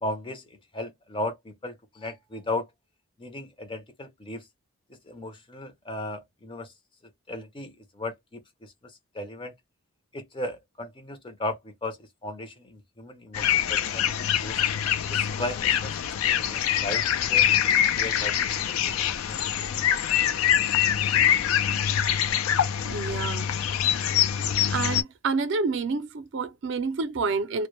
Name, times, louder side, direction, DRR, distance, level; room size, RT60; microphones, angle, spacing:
voice 1, 0.0-0.4 0.7-2.7 3.2-4.5 5.1-6.7 7.3-9.5 10.1-12.0 12.2-14.1 14.4-14.6 15.1-19.4, left 1 dB, 25° left, 0.5 m, -36 dB
sound 1, 13.3-25.0, left 10 dB, 80° left, 0.3 m, -24 dB
voice 2, 22.9-23.5 24.7-27.7, right 4 dB, 60° right, 0.4 m, -28 dB
2.1 x 2.0 x 2.9 m
head